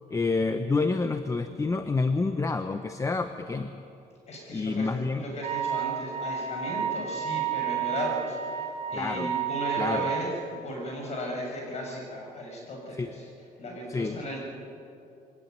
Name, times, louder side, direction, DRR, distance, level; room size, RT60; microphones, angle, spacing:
voice 1, 0.1-3.8 4.5-5.2 8.9-9.3 9.8-10.1 13.0-13.1 13.9-14.2, left 3 dB, 20° left, 9 dB, 0.9 m, -28 dB
voice 2, 4.3-13.3 13.6-14.4, equal, 50° left, 0 dB, 6.8 m, -35 dB
Wind instrument woodwind instrument, 5.4-10.2, right 9 dB, 45° right, 2.3 m, -31 dB
23.0 x 18.0 x 9.3 m, 2.7 s
cardioid pair, 130°, 15 cm